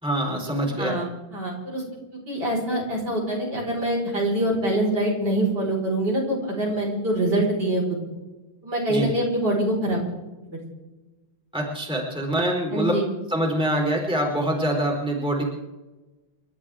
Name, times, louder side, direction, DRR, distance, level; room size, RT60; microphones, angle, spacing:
voice 1, 0.0-1.0 8.9-9.1 11.5-13.0 13.3-15.4, right 1 dB, ahead, -1 dB, 4.1 m, -25 dB
voice 2, 0.8-1.8 2.3-7.8 8.6-10.0 12.7-13.0, right 1 dB, 50° right, -2 dB, 5.7 m, -24 dB
30.0 x 13.0 x 3.7 m, 1.1 s
omnidirectional pair, 2.3 m